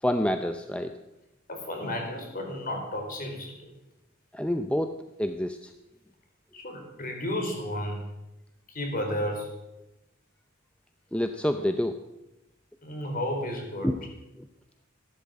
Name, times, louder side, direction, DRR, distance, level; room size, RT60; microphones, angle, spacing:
voice 1, 0.0-0.9 4.3-5.7 11.1-12.0 13.8-14.0 14.4-14.5, left 1 dB, 5° left, 7 dB, 0.6 m, -28 dB
voice 2, 1.5-3.5 6.5-8.0 8.7-9.5 12.8-13.9, left 1 dB, 45° left, 2 dB, 4.5 m, -32 dB
14.5 x 12.0 x 7.7 m, 0.93 s
head